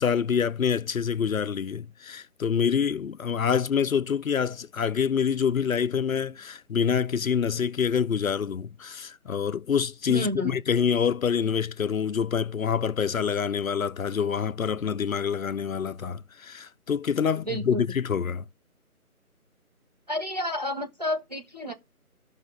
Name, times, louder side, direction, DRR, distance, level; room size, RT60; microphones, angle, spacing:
voice 1, 0.0-18.4, left 7 dB, 70° left, 0.6 m, -26 dB
voice 2, 10.1-10.6 17.5-17.8 20.1-21.7, left 1 dB, 30° right, 0.7 m, -30 dB
12.0 x 5.6 x 3.2 m
figure-of-eight pair, 165°, 44 cm